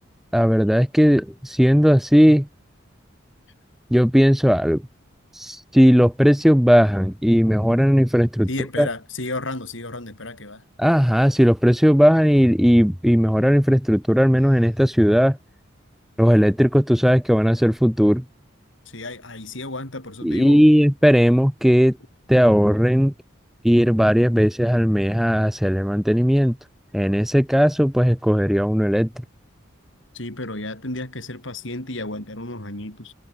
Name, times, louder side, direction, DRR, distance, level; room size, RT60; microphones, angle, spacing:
voice 1, 0.3-2.5 3.9-4.8 5.4-8.5 8.8-8.9 10.8-15.4 16.2-18.2 20.2-22.0 22.3-23.1 23.6-26.6 26.9-29.1, equal, ahead, 1.0 m, -17 dB
voice 2, 8.5-10.6 18.9-20.7 30.1-33.1, left 2 dB, 75° left, 5.2 m, -32 dB
head